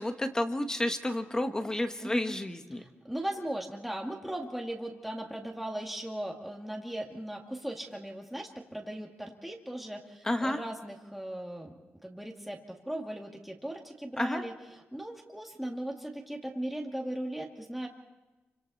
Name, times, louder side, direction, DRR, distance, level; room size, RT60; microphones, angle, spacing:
voice 1, 0.0-2.8 10.2-10.6 14.2-14.4, left 1 dB, 15° left, 6 dB, 1.6 m, -31 dB
voice 2, 2.0-2.3 2.7-11.7 12.0-17.9, right 1 dB, ahead, 0 dB, 2.3 m, -38 dB
28.5 x 25.5 x 4.2 m, 1.1 s
cardioid pair, 110°, 4 cm